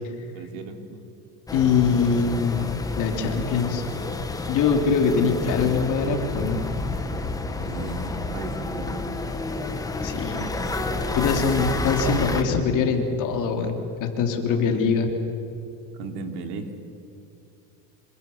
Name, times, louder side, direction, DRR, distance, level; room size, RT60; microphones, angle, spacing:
voice 1, 0.3-1.0 2.6-2.7 7.6-9.0 14.5-15.0 15.9-16.7, right 4 dB, 55° right, 5 dB, 3.2 m, -37 dB
voice 2, 1.5-3.8 4.5-6.6 10.0-10.5 11.1-15.1, left 5 dB, 40° left, 3 dB, 3.4 m, -23 dB
sound 1, 1.5-12.4, left 2 dB, 5° left, 1.2 m, -30 dB
26.5 x 26.0 x 7.3 m, 2.6 s
supercardioid pair, 160°, 50 cm